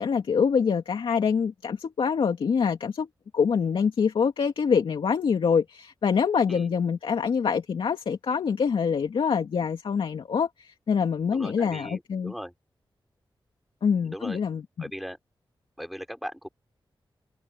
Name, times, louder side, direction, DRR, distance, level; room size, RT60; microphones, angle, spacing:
voice 1, 0.0-3.1 3.3-12.3 13.8-14.9, left 6 dB, 85° left, 2.5 m, -25 dB
voice 2, 11.3-12.5 14.0-14.4 14.8-15.2 15.8-16.5, equal, ahead, 4.9 m, -38 dB
open air
wide cardioid pair, 80°, 9 cm